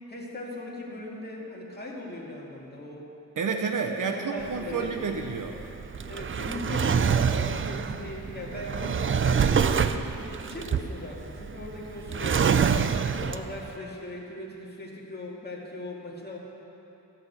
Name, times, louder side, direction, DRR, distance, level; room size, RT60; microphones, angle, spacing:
voice 1, 0.1-3.1 4.0-4.9 6.0-10.1 10.4-12.5 13.1-16.4, left 1 dB, 30° left, -3 dB, 2.2 m, -39 dB
voice 2, 3.4-5.6, right 5 dB, 70° right, 4 dB, 0.8 m, -30 dB
Drawer open or close, 4.4-13.7, right 6 dB, 40° right, 0.4 m, -26 dB
14.0 x 5.7 x 8.0 m, 3.0 s
wide cardioid pair, 85°, 32 cm